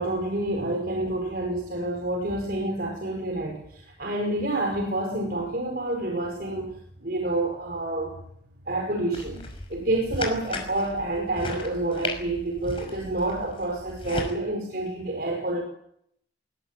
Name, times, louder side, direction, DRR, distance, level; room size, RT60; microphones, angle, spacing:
voice 1, 0.0-8.2 8.6-15.6, right 2 dB, 55° right, 3 dB, 5.1 m, -28 dB
sound 1, 9.1-14.3, left 2 dB, 30° left, 5.8 m, -36 dB
22.0 x 21.0 x 9.1 m, 0.72 s
head